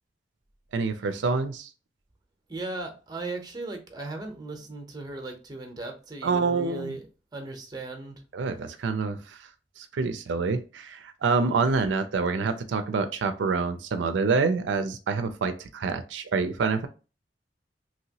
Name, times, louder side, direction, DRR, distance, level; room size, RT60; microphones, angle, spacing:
voice 1, 0.7-1.7 6.2-7.0 8.3-9.4 9.8-16.9, right 4 dB, 85° right, 0.4 m, -27 dB
voice 2, 2.5-7.0 7.3-8.2, right 2 dB, 20° right, 0.7 m, -37 dB
3.0 x 2.9 x 2.8 m
head